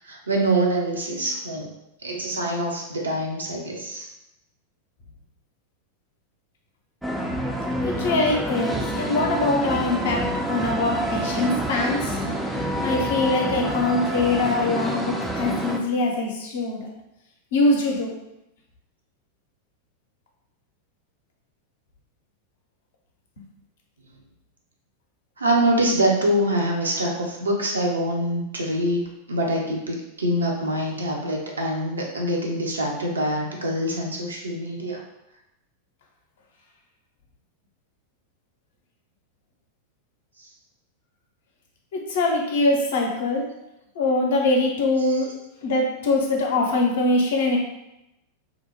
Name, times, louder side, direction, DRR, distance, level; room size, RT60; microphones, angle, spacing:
voice 1, 0.0-1.7 2.0-4.1 25.4-29.0 29.3-35.0 45.0-45.2, right 1 dB, 75° right, 0 dB, 0.5 m, -25 dB
sound 1, 7.0-15.8, right 1 dB, 5° right, 0.3 m, -27 dB
voice 2, 7.8-12.2 12.8-16.9 17.5-18.1 41.9-43.5 44.0-45.3 45.6-47.6, left 2 dB, 60° left, 0 dB, 0.5 m, -23 dB
2.5 x 2.0 x 2.9 m, 0.88 s
figure-of-eight pair, 90°, 0 cm